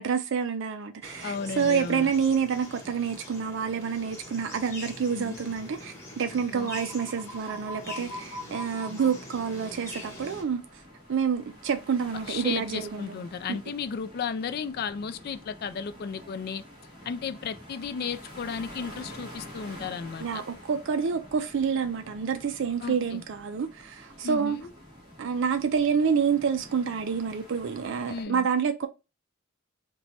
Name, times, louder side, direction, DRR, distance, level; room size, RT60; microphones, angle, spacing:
voice 1, 0.0-10.6 11.1-13.2 13.5-13.6 20.2-24.6 25.2-28.9, right 6 dB, 60° right, 0.4 m, -28 dB
sound 1, 1.0-10.4, left 1 dB, 15° left, 1.0 m, -42 dB
voice 2, 1.2-2.1 5.1-5.4 6.5-6.7 12.2-16.6 17.1-20.4 22.8-23.2 24.2-24.7 28.1-28.5, left 6 dB, 50° left, 0.3 m, -34 dB
sound 2, 9.4-28.2, equal, 20° right, 1.2 m, -48 dB
3.0 x 2.2 x 4.1 m
head